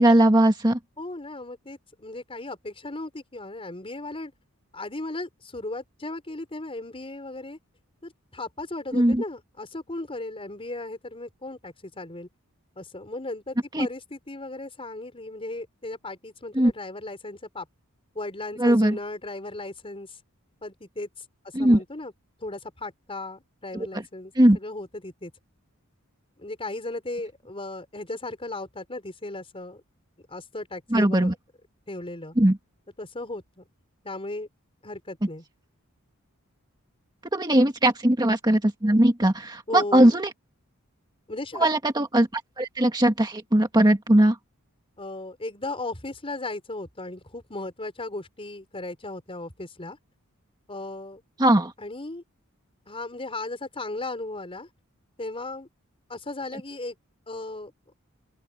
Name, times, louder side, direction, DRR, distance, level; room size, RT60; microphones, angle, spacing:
voice 1, 0.0-0.8 8.9-9.2 13.7-13.9 16.6-16.7 18.6-19.0 21.5-21.8 23.7-23.9 24.4-24.6 30.9-31.3 32.4-32.6 37.3-40.3 41.6-42.3 42.6-44.4 51.4-51.7, right 1 dB, 20° right, 1.8 m, -19 dB
voice 2, 1.0-4.3 4.7-7.6 8.0-12.3 12.8-17.7 18.1-20.2 20.6-21.1 21.6-22.1 22.4-25.3 26.4-29.8 30.3-31.4 31.9-32.4 33.0-33.7 34.0-34.5 34.8-35.4 39.7-40.2 41.3-41.7 45.0-50.0 50.7-51.2 51.8-52.2 52.9-54.7 55.2-55.7 56.1-56.9 57.3-57.7, left 2 dB, 25° left, 4.7 m, -36 dB
open air
head